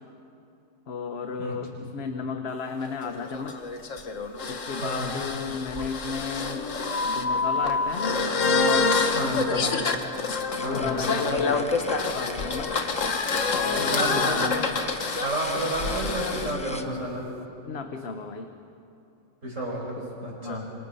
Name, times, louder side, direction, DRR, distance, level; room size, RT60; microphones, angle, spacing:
voice 1, 0.9-3.6 4.5-6.7 6.9-8.2 8.5-9.7 10.6-11.8 12.1-12.8 13.5-14.6 17.7-18.5 20.0-20.1 20.4-20.7, left 5 dB, 60° left, 6 dB, 1.2 m, -34 dB
sound 1, 2.8-16.5, left 4 dB, 85° left, 1.7 m, -27 dB
voice 2, 4.8-5.1 9.1-9.5 10.6-11.4 13.8-14.9 15.2-17.4 19.4-20.7, right 1 dB, 80° right, -2 dB, 5.6 m, -31 dB
sound 2, 10.3-16.9, left 1 dB, 5° left, 0.9 m, -42 dB
26.5 x 26.0 x 5.6 m, 2.7 s
omnidirectional pair, 1.3 m